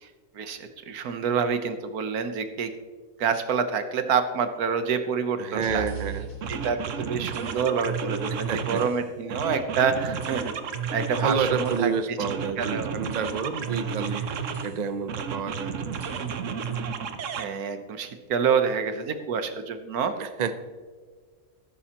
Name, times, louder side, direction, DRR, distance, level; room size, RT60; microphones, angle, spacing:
voice 1, 0.3-2.7 3.2-5.8 6.5-10.5 10.9-12.2 12.6-12.9 13.7-14.3 17.4-20.1, right 6 dB, 85° right, 9 dB, 1.5 m, -27 dB
voice 2, 5.4-6.2 8.5-8.8 11.1-14.2 14.6-15.8 20.2-20.6, right 6 dB, 40° right, 11 dB, 0.6 m, -29 dB
sound 1, 5.6-7.5, right 5 dB, 85° left, 2.8 m, -38 dB
sound 2, 5.9-6.0 6.4-9.0 9.3-11.9 12.2-14.7 15.1-17.4, right 6 dB, 60° right, 1.1 m, -32 dB
14.5 x 12.5 x 3.0 m, 1.5 s
omnidirectional pair, 1.5 m